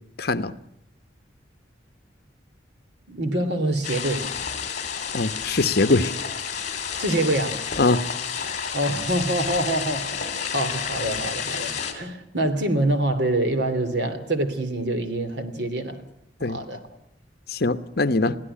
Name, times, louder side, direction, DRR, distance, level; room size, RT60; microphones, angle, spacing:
voice 1, 0.2-0.5 5.1-6.1 7.8-8.0 16.4-16.6 17.5-18.3, left 2 dB, 55° left, 1.0 m, -22 dB
voice 2, 3.1-4.3 7.0-7.6 8.7-16.0 16.4-16.8 18.2-18.4, right 1 dB, 65° right, 2.9 m, -25 dB
sound 1, 3.8-11.9, left 7 dB, 40° left, 3.2 m, -30 dB
23.5 x 16.0 x 9.9 m
head